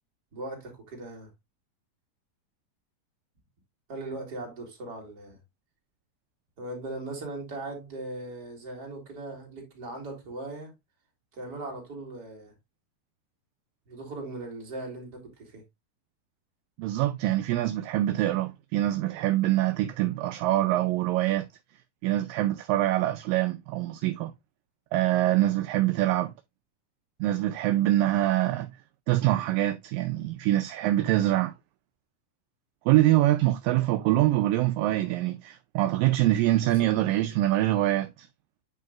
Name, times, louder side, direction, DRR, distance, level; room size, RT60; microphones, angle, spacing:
voice 1, 0.3-1.3 3.9-5.4 6.6-10.7 11.3-12.5 13.9-15.6 36.7-37.4, right 2 dB, 30° right, 2.9 m, -39 dB
voice 2, 16.8-21.5 22.0-24.3 24.9-26.3 27.2-28.7 29.1-31.5 32.9-38.3, right 15 dB, 80° right, 2.1 m, -24 dB
9.3 x 5.4 x 2.4 m
omnidirectional pair, 4.3 m